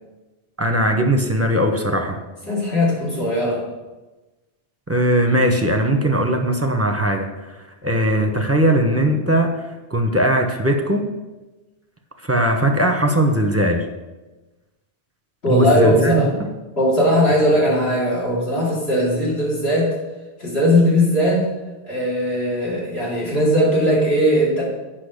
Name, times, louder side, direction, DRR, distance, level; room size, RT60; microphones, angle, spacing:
voice 1, 0.6-2.2 4.9-7.3 7.8-9.6 9.9-11.1 12.2-13.8 15.5-16.2, right 1 dB, 15° right, 4 dB, 0.8 m, -19 dB
voice 2, 2.5-3.6 15.4-16.3 16.8-19.9 20.4-21.5 21.8-24.6, equal, 65° left, -5 dB, 3.3 m, -18 dB
8.4 x 6.0 x 6.5 m, 1.1 s
omnidirectional pair, 1.1 m